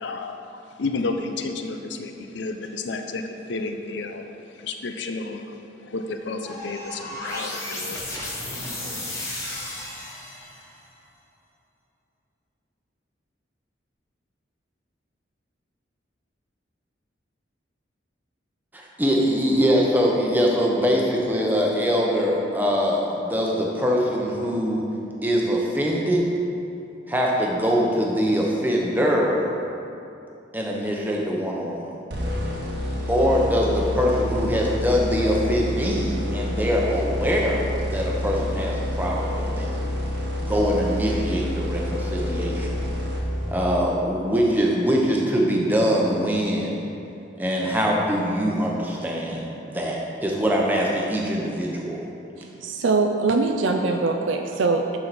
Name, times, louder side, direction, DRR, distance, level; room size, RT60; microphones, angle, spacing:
voice 1, 0.0-5.5 5.9-8.0, left 3 dB, 70° left, 6 dB, 0.6 m, -31 dB
sound 1, 6.4-10.7, left 1 dB, 15° left, 1.0 m, -33 dB
voice 2, 18.7-24.8 25.2-26.3 27.1-29.4 30.5-31.9 33.1-39.8 40.4-42.8 43.5-46.8 47.4-52.0, equal, 10° right, -2 dB, 0.8 m, -23 dB
sound 2, 32.1-43.8, left 1 dB, 65° right, 1.1 m, -28 dB
voice 3, 52.4-55.0, right 3 dB, 80° right, 3 dB, 0.5 m, -23 dB
11.0 x 4.7 x 4.2 m, 2.7 s
head